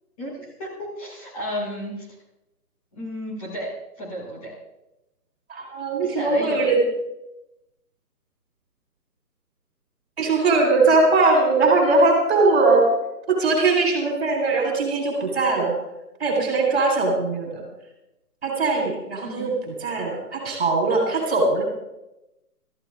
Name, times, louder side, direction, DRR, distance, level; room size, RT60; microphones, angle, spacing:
voice 1, 0.2-2.1 2.9-3.7 4.0-4.5 6.0-6.7 19.2-19.6, equal, 20° left, -4 dB, 6.3 m, -33 dB
voice 2, 5.5-6.8 10.2-12.8 13.3-15.7 16.2-17.6 18.4-21.6, right 3 dB, 40° right, 1 dB, 4.0 m, -20 dB
26.5 x 14.5 x 2.5 m, 0.92 s
hypercardioid pair, 170°, 47 cm